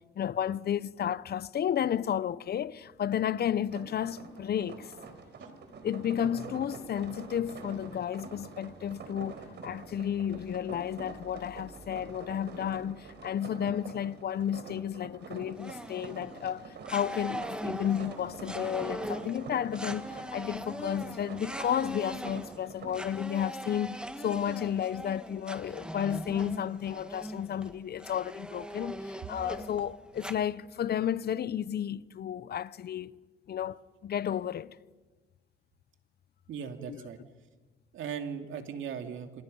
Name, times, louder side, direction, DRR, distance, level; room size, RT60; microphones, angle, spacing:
voice 1, 0.2-4.9 5.8-9.4 9.6-33.1 33.5-34.8 36.9-37.1, left 9 dB, 55° left, 0.8 m, -32 dB
sound 1, 3.6-23.2, right 4 dB, 60° right, 4.2 m, -46 dB
sound 2, 15.5-16.5 16.8-30.3, right 1 dB, 5° right, 1.6 m, -41 dB
voice 2, 36.5-37.2 37.9-39.4, right 7 dB, 75° right, 2.6 m, -38 dB
28.0 x 27.5 x 5.5 m
cardioid pair, 90°, 20 cm